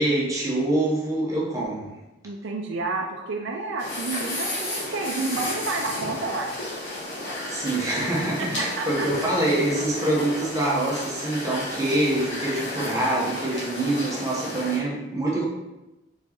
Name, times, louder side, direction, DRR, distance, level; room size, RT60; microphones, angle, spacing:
voice 1, 0.0-1.9 7.5-15.5, right 1 dB, 15° right, -5 dB, 0.9 m, -25 dB
voice 2, 2.2-6.5 8.4-9.1, right 3 dB, 70° right, 1 dB, 0.4 m, -30 dB
sound 1, 3.8-14.8, left 1 dB, 65° left, 1.5 m, -33 dB
4.3 x 4.1 x 2.9 m, 1.0 s
head